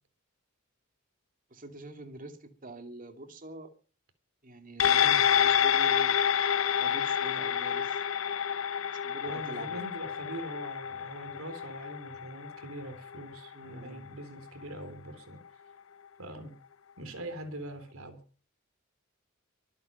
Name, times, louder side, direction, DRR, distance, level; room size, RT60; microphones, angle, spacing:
voice 1, 1.5-3.7 4.4-6.3 6.8-8.0 8.9-9.9 13.5-14.1, right 1 dB, 40° right, 6 dB, 2.5 m, -44 dB
sound 1, 4.8-13.5 13.9-14.0, left 9 dB, 70° left, 0.7 m, -28 dB
voice 2, 9.3-15.4 16.2-16.5 17.0-18.2, right 1 dB, 85° right, 9 dB, 3.8 m, -42 dB
23.5 x 9.1 x 5.4 m, 0.38 s
head